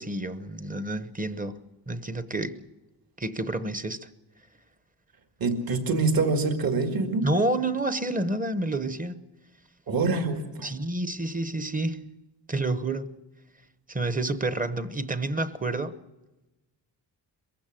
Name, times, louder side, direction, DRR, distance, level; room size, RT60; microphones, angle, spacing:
voice 1, 0.0-1.6 1.9-2.7 3.2-4.1 7.2-9.2 10.6-12.1 12.5-13.2 13.9-16.0, right 2 dB, 20° right, 0.9 m, -29 dB
voice 2, 5.4-7.3 9.9-10.7, right 3 dB, 55° right, 2.2 m, -25 dB
23.0 x 15.5 x 7.7 m
wide cardioid pair, 150°, 42 cm